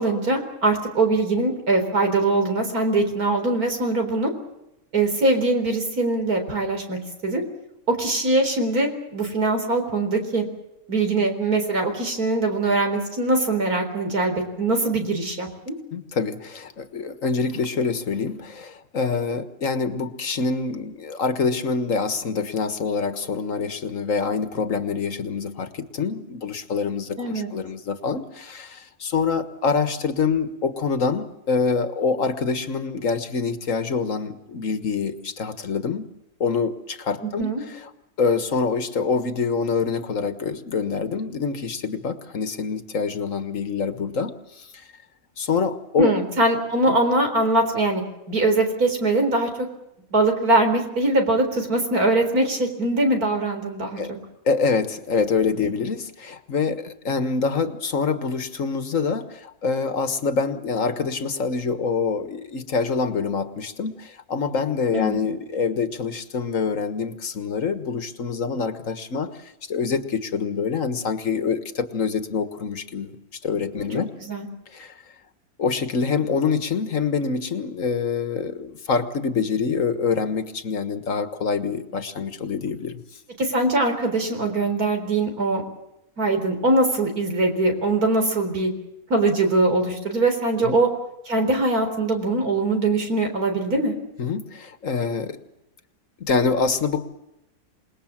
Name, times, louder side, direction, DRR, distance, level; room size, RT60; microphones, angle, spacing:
voice 1, 0.0-4.3 4.9-7.4 7.9-10.4 10.9-15.7 27.2-27.5 37.2-37.6 46.0-48.0 48.3-49.5 50.1-54.0 55.6-55.7 64.9-65.2 73.8-73.9 74.2-74.5 83.4-85.6 86.2-88.7 89.1-90.9 91.3-93.9, right 2 dB, 85° right, 5 dB, 4.6 m, -22 dB
voice 2, 15.9-36.1 36.4-37.9 38.2-44.8 45.4-46.1 46.9-47.0 54.0-54.1 54.4-73.2 73.4-74.1 74.7-74.9 75.6-83.0 90.6-90.8 94.2-95.4 96.2-97.2, left 5 dB, 60° left, 9 dB, 1.8 m, -25 dB
27.5 x 20.0 x 7.4 m, 0.87 s
omnidirectional pair, 1.5 m